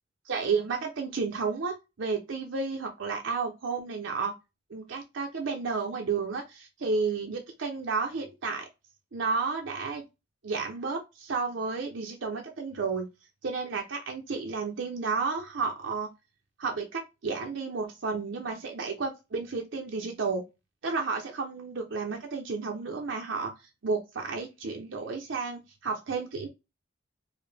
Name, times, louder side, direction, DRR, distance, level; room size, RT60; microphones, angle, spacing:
voice 1, 0.3-4.3 4.7-8.7 9.1-10.0 10.4-13.1 13.4-16.1 16.6-20.4 20.8-23.5 23.8-26.5, right 4 dB, 80° right, 2 dB, 0.6 m, -32 dB
4.7 x 2.1 x 3.3 m, 0.25 s
head